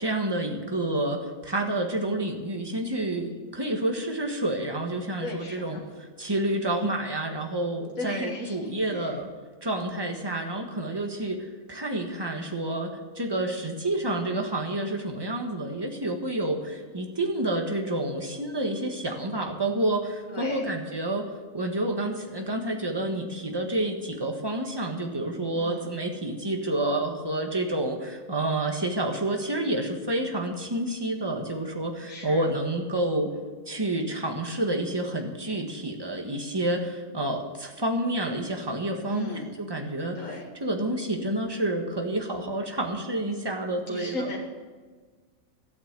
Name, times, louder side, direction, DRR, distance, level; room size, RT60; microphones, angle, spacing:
voice 1, 0.0-5.8 6.2-9.3 9.6-21.3 21.5-33.3 33.7-40.3 40.6-44.3, right 1 dB, 20° right, 3 dB, 1.5 m, -29 dB
voice 2, 5.2-5.8 6.6-7.0 8.0-9.2 20.3-20.7 25.5-25.9 32.1-32.5 39.1-39.5 40.2-40.5 43.9-44.4, left 2 dB, 90° left, -1 dB, 1.9 m, -36 dB
13.5 x 8.6 x 7.4 m, 1.4 s
omnidirectional pair, 1.3 m